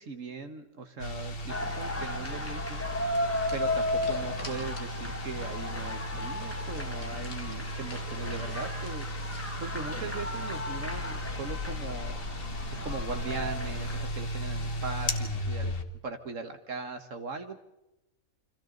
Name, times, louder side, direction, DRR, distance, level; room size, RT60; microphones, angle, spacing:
voice 1, 0.0-2.9 3.5-9.1 9.6-12.2 12.7-15.7 16.0-17.6, right 4 dB, 65° right, 6 dB, 1.8 m, -39 dB
sound 1, 1.0-15.8, left 1 dB, 45° left, 1.5 m, -36 dB
sound 2, 1.5-14.0, left 1 dB, 10° left, 1.2 m, -35 dB
sound 3, 3.5-5.2 5.5-5.6 5.9-6.0 6.4-9.5, left 3 dB, 85° left, 2.8 m, -50 dB
29.5 x 25.5 x 4.0 m, 0.91 s
omnidirectional pair, 1.4 m